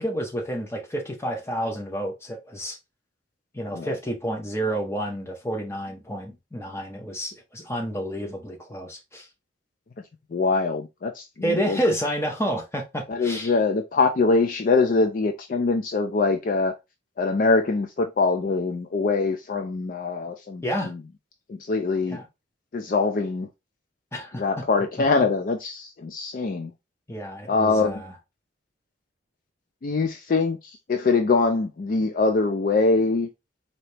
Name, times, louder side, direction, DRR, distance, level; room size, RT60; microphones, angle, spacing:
voice 1, 0.0-2.8 3.5-9.3 11.4-13.5 20.6-20.9 22.1-22.3 24.1-24.6 25.0-25.1 27.1-28.2, equal, 15° left, 0.8 m, -29 dB
voice 2, 10.3-11.8 13.1-16.7 17.2-21.0 21.5-22.2 22.7-23.5 24.4-26.7 27.5-28.0 29.8-33.3, left 3 dB, 45° left, 0.4 m, -23 dB
4.0 x 2.8 x 3.2 m
head